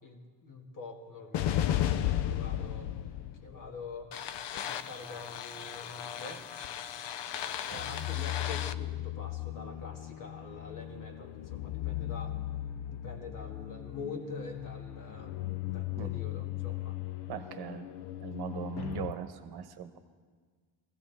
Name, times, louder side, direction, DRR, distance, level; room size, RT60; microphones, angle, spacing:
voice 1, 0.0-2.9 3.4-4.1 4.5-6.4 7.7-12.4 12.9-17.0, left 3 dB, 45° left, 3 dB, 2.0 m, -46 dB
sound 1, 1.3-19.1, left 12 dB, 65° left, 0.6 m, -36 dB
voice 2, 17.3-17.9 18.2-20.0, right 8 dB, 55° right, 8 dB, 1.1 m, -40 dB
21.5 x 15.5 x 3.5 m, 1.6 s
cardioid pair, 125°, 45 cm